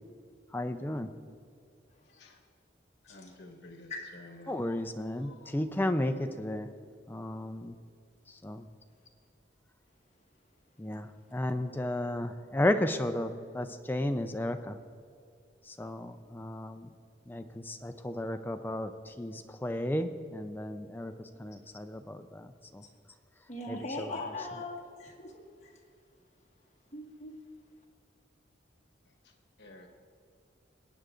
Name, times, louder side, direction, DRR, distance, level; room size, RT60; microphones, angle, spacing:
voice 1, 0.5-1.1 4.5-6.7 7.1-7.7 8.4-8.6 10.8-14.7 15.8-16.9 17.3-21.1 21.4-22.5 23.7-24.3, left 1 dB, 10° left, 7 dB, 0.4 m, -33 dB
voice 2, 3.1-4.6 5.1-5.6 29.6-29.9, left 2 dB, 65° left, 2 dB, 1.4 m, -51 dB
voice 3, 23.5-25.7 26.9-27.3, left 2 dB, 40° left, -2 dB, 1.6 m, -40 dB
21.0 x 9.2 x 2.5 m, 2.4 s
head